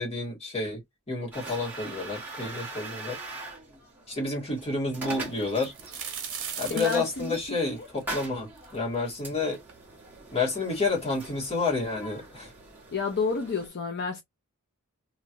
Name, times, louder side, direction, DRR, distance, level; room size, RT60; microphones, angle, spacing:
voice 1, 0.0-3.2 4.1-5.7 6.6-9.6 10.3-12.5, left 3 dB, 30° left, 1.8 m, -30 dB
sound 1, 1.3-13.7, right 2 dB, 10° right, 1.3 m, -42 dB
sound 2, 5.4-9.2 9.7-9.8 10.6-10.7 10.9-11.6 12.5-12.6 13.0-13.2, right 7 dB, 60° right, 1.3 m, -38 dB
voice 2, 6.7-7.9 12.9-14.2, left 4 dB, 50° left, 0.6 m, -30 dB
3.1 x 3.0 x 2.5 m
head